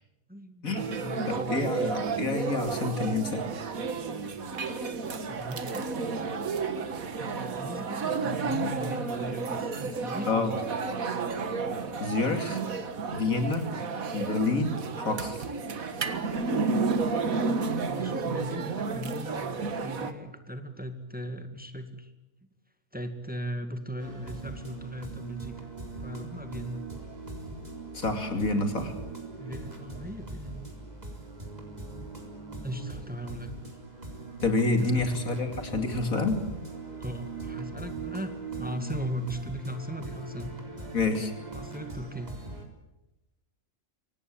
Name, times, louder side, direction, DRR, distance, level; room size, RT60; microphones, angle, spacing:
voice 1, 0.3-1.7 5.3-5.9 7.2-10.6 17.5-17.6 17.9-22.1 22.9-25.7 26.0-26.9 29.4-30.8 32.6-33.7 34.7-35.1 37.0-40.5 41.5-42.3, equal, 5° right, 8 dB, 2.0 m, -38 dB
sound 1, 0.7-20.1, right 4 dB, 85° right, 2.0 m, -31 dB
voice 2, 1.3-3.5 10.3-10.5 12.0-12.6 13.1-13.7 14.1-15.4 27.9-28.9 34.4-36.4 40.9-41.3, left 3 dB, 85° left, 6 dB, 3.3 m, -28 dB
sound 2, 24.0-42.6, right 3 dB, 30° right, 4.1 m, -41 dB
25.5 x 18.5 x 8.8 m, 0.95 s
omnidirectional pair, 1.4 m